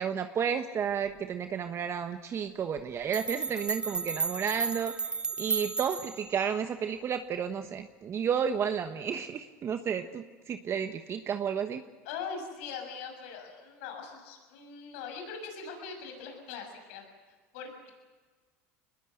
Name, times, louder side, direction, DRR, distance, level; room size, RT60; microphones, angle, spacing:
voice 1, 0.0-4.9 5.4-11.8, right 7 dB, 40° right, 7 dB, 1.2 m, -32 dB
sound 1, 2.8-2.9 3.1-6.3, right 4 dB, 15° right, 1.0 m, -33 dB
voice 2, 12.0-17.1 17.5-17.9, left 5 dB, 75° left, 4 dB, 6.8 m, -41 dB
24.0 x 20.5 x 7.9 m, 1.4 s
supercardioid pair, 95°, 7 cm